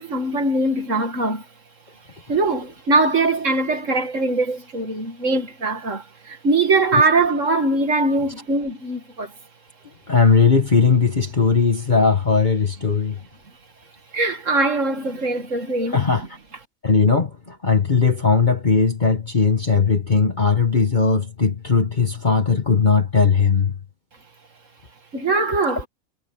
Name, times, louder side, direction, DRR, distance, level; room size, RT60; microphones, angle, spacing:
voice 1, 0.0-1.4 2.3-9.3 14.1-16.0 25.1-25.9, right 2 dB, 60° right, 2.6 m, -21 dB
voice 2, 10.1-13.2 15.9-16.3 16.8-23.8, left 5 dB, 35° left, 1.6 m, -18 dB
omnidirectional pair, 1.4 m